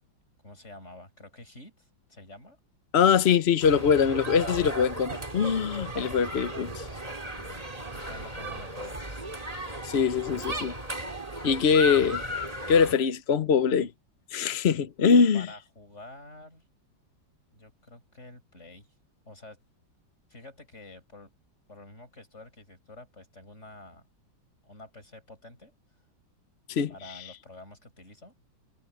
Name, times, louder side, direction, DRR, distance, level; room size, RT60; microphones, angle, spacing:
voice 1, 0.4-2.6 7.2-9.0 15.3-16.7 17.5-18.9 19.2-19.6 20.3-21.3 21.7-24.0 24.6-25.7 26.9-28.3, left 2 dB, 35° left, 8.4 m, -48 dB
voice 2, 2.9-6.9 9.8-10.7 11.4-12.2 12.7-13.9 14.3-15.5 26.7-26.9, left 6 dB, 50° left, 0.7 m, -23 dB
sound 1, 3.6-12.9, right 1 dB, 20° right, 2.6 m, -36 dB
omnidirectional pair, 2.1 m